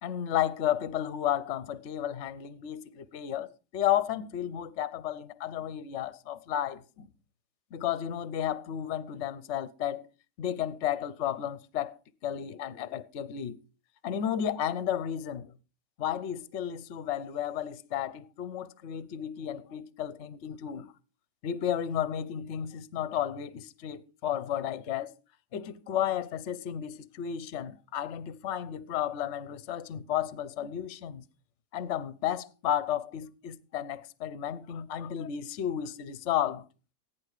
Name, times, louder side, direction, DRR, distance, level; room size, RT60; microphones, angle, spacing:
voice 1, 0.0-7.1 7.7-10.1 10.4-11.9 12.2-13.6 14.0-15.5 16.0-20.9 21.4-25.1 25.5-31.2 31.7-36.6, left 10 dB, 50° left, 1.0 m, -33 dB
15.5 x 11.0 x 4.9 m
omnidirectional pair, 1.8 m